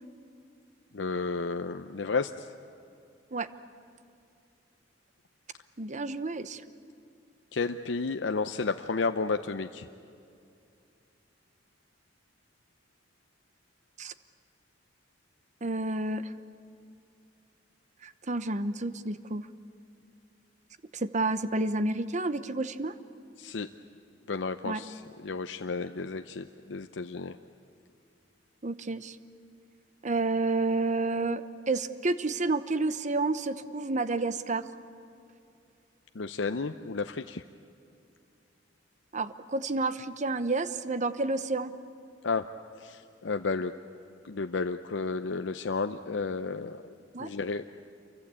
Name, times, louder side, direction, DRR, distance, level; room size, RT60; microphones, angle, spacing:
voice 1, 0.9-2.5 7.5-9.9 23.4-23.7 24.3-27.4 36.1-37.4 42.2-42.5 42.8-43.7 44.2-46.9 47.2-47.7, left 4 dB, 85° left, 7 dB, 0.7 m, -32 dB
voice 2, 5.8-6.6 14.0-14.1 15.6-16.3 18.0-19.5 20.9-22.9 24.6-24.8 28.6-29.2 30.0-34.6 39.1-41.7 47.1-47.3, right 3 dB, 40° right, 12 dB, 0.9 m, -30 dB
28.0 x 23.5 x 8.4 m, 2.5 s
head